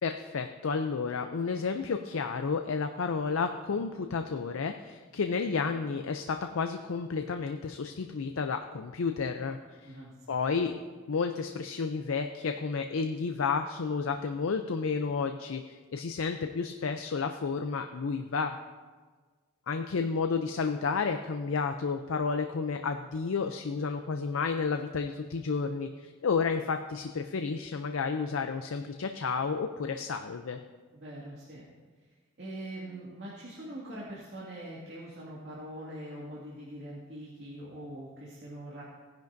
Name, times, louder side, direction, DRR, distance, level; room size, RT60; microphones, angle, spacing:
voice 1, 0.0-10.0 10.3-10.8 11.1-18.6 19.7-30.6, left 5 dB, 75° left, 6 dB, 0.5 m, -31 dB
voice 2, 9.8-10.4 30.9-31.6 32.4-38.8, right 1 dB, 55° right, -6 dB, 2.2 m, -43 dB
17.5 x 10.5 x 2.6 m, 1.4 s
head